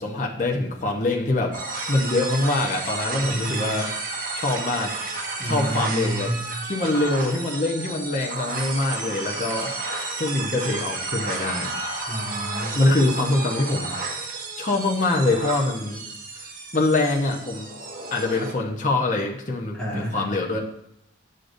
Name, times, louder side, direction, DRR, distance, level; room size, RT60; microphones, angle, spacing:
voice 1, 0.0-3.9 4.3-4.9 5.4-6.3 6.6-11.7 12.7-13.9 14.6-16.0 16.7-17.7 18.1-20.6, left 2 dB, 40° left, -1 dB, 0.8 m, -24 dB
sound 1, 1.5-18.5, right 3 dB, 45° right, 1.2 m, -32 dB
voice 2, 3.2-3.7 5.4-6.5 12.1-12.8 19.7-20.3, equal, 5° left, -6 dB, 1.7 m, -29 dB
9.3 x 6.5 x 2.6 m, 0.79 s
head